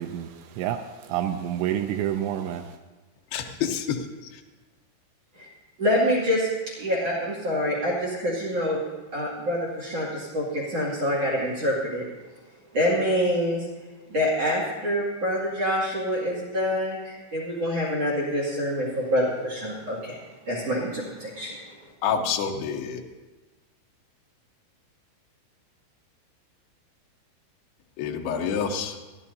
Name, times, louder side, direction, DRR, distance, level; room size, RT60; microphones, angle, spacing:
voice 1, 0.0-2.8, right 11 dB, 90° right, 6 dB, 2.5 m, -29 dB
voice 2, 3.3-4.0 22.0-23.0 28.0-29.0, left 7 dB, 70° left, 3 dB, 2.6 m, -27 dB
voice 3, 5.8-8.8 9.1-12.0 12.7-13.7 14.1-20.2 20.5-21.6, equal, 40° right, -3 dB, 2.7 m, -26 dB
29.0 x 11.0 x 2.8 m, 1.2 s
omnidirectional pair, 5.6 m